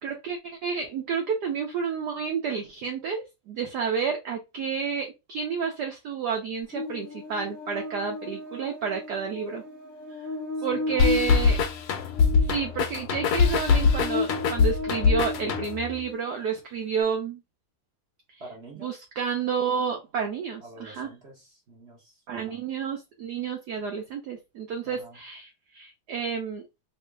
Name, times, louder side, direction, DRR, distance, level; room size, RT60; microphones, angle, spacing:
voice 1, 0.0-9.6 10.6-11.6 12.4-17.4 18.3-18.4 18.8-21.1 22.3-26.7, right 6 dB, 70° right, 1.0 m, -30 dB
Buzz, 6.7-16.2, left 3 dB, 50° left, 1.0 m, -34 dB
voice 2, 10.6-11.2 18.4-19.0 20.6-22.6 24.8-25.2, right 2 dB, 45° right, 0.9 m, -47 dB
sound 1, 11.0-16.0, left 5 dB, 75° left, 0.9 m, -23 dB
3.1 x 2.7 x 3.3 m
omnidirectional pair, 2.3 m